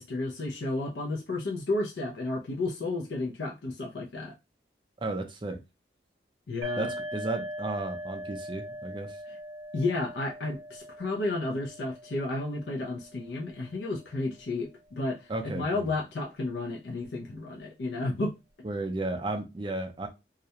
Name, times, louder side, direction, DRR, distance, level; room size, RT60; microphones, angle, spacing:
voice 1, 0.0-4.3 6.5-6.9 9.3-9.4 9.7-18.3, left 2 dB, 75° left, 0.5 m, -32 dB
voice 2, 5.0-5.6 6.8-9.2 15.3-15.9 18.6-20.1, right 2 dB, 25° right, 0.4 m, -33 dB
sound 1, 6.6-14.1, equal, 80° right, 0.6 m, -41 dB
2.4 x 2.1 x 2.7 m
head